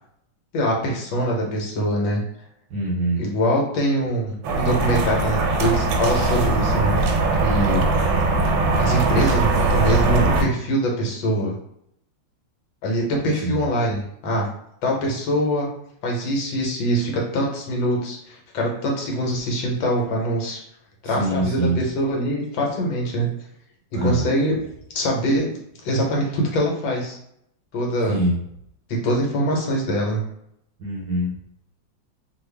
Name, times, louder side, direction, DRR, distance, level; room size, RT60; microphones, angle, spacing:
voice 1, 0.5-2.2 3.2-7.0 7.4-7.8 8.8-11.5 12.8-14.5 14.8-15.7 16.0-20.6 21.0-23.3 24.0-24.6 24.9-25.5 25.8-27.2 27.7-28.2 28.9-30.2, equal, 75° left, -1 dB, 1.6 m, -23 dB
voice 2, 2.7-3.2 13.4-13.6 21.2-21.8 23.9-24.2 28.1-28.3 30.8-31.3, right 1 dB, 65° right, -3 dB, 1.2 m, -23 dB
sound 1, 4.4-10.4, right 2 dB, 85° right, 1.4 m, -20 dB
3.3 x 2.4 x 3.3 m, 0.74 s
omnidirectional pair, 2.2 m